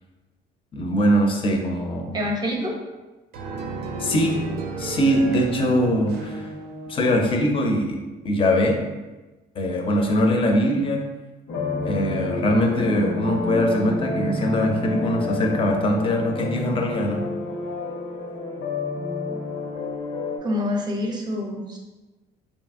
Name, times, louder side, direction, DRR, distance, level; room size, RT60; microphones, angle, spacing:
voice 1, 0.7-2.2 4.0-4.4 4.8-6.5 6.9-8.0 8.2-8.8 9.6-11.0 11.8-17.2, equal, 30° left, 2 dB, 0.4 m, -22 dB
voice 2, 2.1-2.8 20.4-21.8, left 1 dB, 25° right, 1 dB, 0.5 m, -26 dB
sound 1, 3.3-7.5, right 2 dB, 75° right, 0.4 m, -33 dB
sound 2, 11.5-20.4, left 2 dB, 80° left, 0.6 m, -29 dB
2.8 x 2.6 x 2.4 m, 1.1 s
cardioid pair, 110°, 17 cm